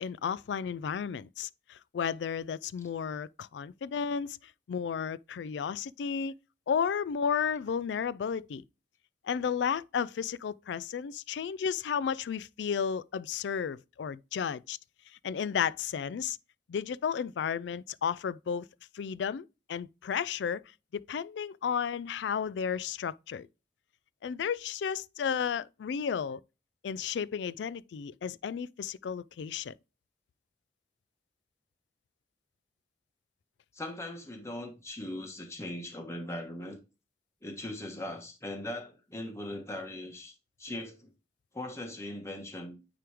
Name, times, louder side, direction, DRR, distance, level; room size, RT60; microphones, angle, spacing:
voice 1, 0.0-4.4 4.7-6.3 6.7-8.6 9.2-14.8 15.2-16.4 16.7-18.7 18.9-20.6 20.9-23.5 24.2-26.4 26.8-29.7, left 7 dB, 70° left, 0.3 m, -33 dB
voice 2, 33.7-36.8 37.4-40.3 40.6-41.1 41.5-42.8, left 1 dB, 15° left, 1.3 m, -39 dB
9.1 x 3.1 x 3.5 m
head